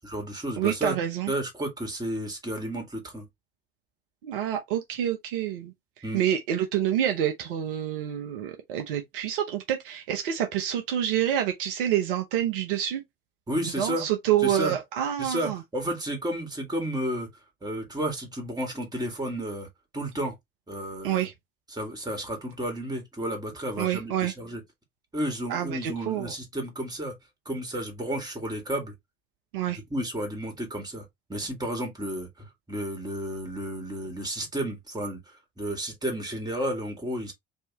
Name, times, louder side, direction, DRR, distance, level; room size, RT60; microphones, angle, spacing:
voice 1, 0.0-1.0 1.3-3.3 6.0-6.2 13.5-14.0 14.4-14.7 15.2-17.3 17.6-19.7 19.9-20.3 20.7-21.3 21.7-24.6 25.1-27.1 27.4-28.9 29.9-35.2 35.6-37.3, right 1 dB, 15° right, 1.6 m, -32 dB
voice 2, 0.6-1.3 4.2-13.0 13.6-15.6 21.0-21.3 23.8-24.3 25.5-26.3 29.5-29.8, right 10 dB, 60° right, 0.6 m, -27 dB
3.2 x 2.7 x 2.8 m
figure-of-eight pair, 60°, 30 cm